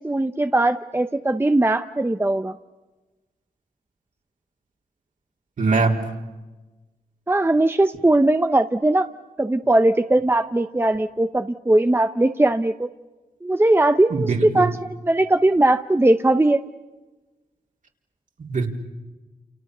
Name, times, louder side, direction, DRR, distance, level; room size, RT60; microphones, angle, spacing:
voice 1, 0.0-2.5 7.3-9.1 9.4-12.9 13.4-16.6, right 2 dB, 15° right, 9 dB, 0.9 m, -19 dB
voice 2, 5.6-6.1 14.1-14.7 18.4-18.7, right 3 dB, 60° right, 1 dB, 4.2 m, -22 dB
29.5 x 29.0 x 6.8 m, 1.2 s
cardioid pair, 70°, 15 cm